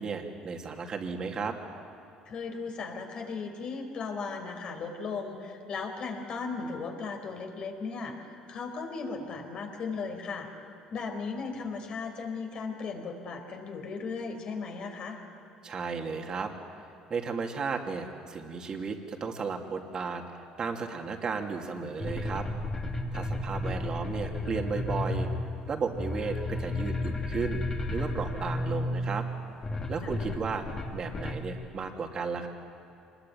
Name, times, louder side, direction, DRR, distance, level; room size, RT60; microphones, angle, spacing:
voice 1, 0.0-1.6 15.6-16.5 17.1-20.2 20.6-22.5 23.1-25.3 25.7-27.6 27.9-29.3 29.9-30.6 30.9-32.5, right 5 dB, 40° right, 3 dB, 2.7 m, -34 dB
voice 2, 2.2-10.5 10.9-15.2 23.3-23.8 30.0-30.2, left 4 dB, 50° left, 3 dB, 4.3 m, -37 dB
sound 1, 22.0-31.5, left 2 dB, 30° left, 2.8 m, -33 dB
25.0 x 21.0 x 9.3 m, 2.9 s
cardioid pair, 110°, 2 cm